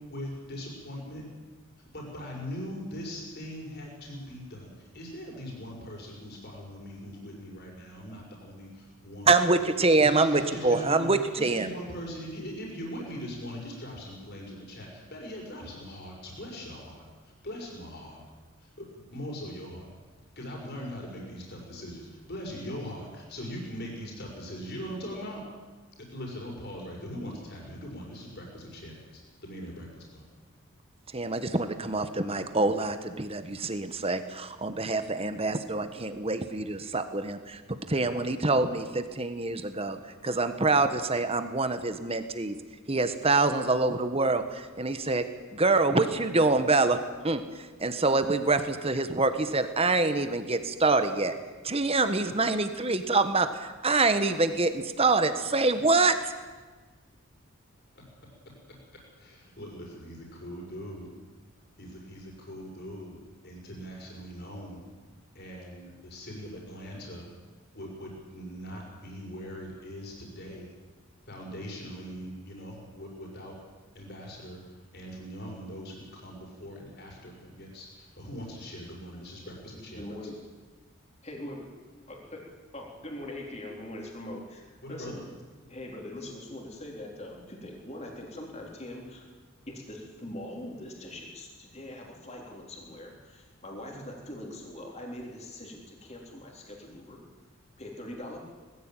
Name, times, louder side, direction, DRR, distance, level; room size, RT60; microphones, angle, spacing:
voice 1, 0.1-1.2 1.9-9.3 10.0-18.2 18.6-19.9 20.4-25.4 26.1-30.3 59.2-61.1 61.8-63.2 63.4-64.8 65.3-67.2 67.7-70.7 71.3-73.5 73.9-74.6 74.9-80.0 84.8-85.2, equal, 50° left, -1 dB, 5.9 m, -41 dB
voice 2, 9.3-11.7 31.1-37.6 37.9-40.0 40.2-42.6 42.9-45.2 45.5-47.0 47.2-47.4 47.8-51.3 51.6-56.2, right 3 dB, 25° right, 9 dB, 1.4 m, -25 dB
voice 3, 79.6-80.4 81.2-81.7 82.1-82.5 82.7-85.2 85.7-89.3 89.7-97.2 97.8-98.4, left 1 dB, 30° left, -1 dB, 3.7 m, -42 dB
20.0 x 15.0 x 9.1 m, 1.3 s
head